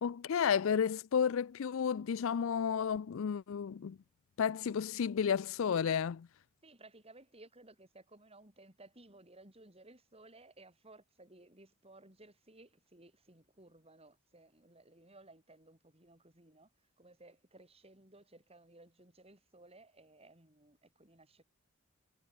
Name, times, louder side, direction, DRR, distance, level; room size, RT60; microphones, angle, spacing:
voice 1, 0.0-4.0 4.4-6.3, left 7 dB, 65° left, 0.4 m, -32 dB
voice 2, 6.6-16.7 17.0-21.4, right 2 dB, 30° right, 7.9 m, -59 dB
head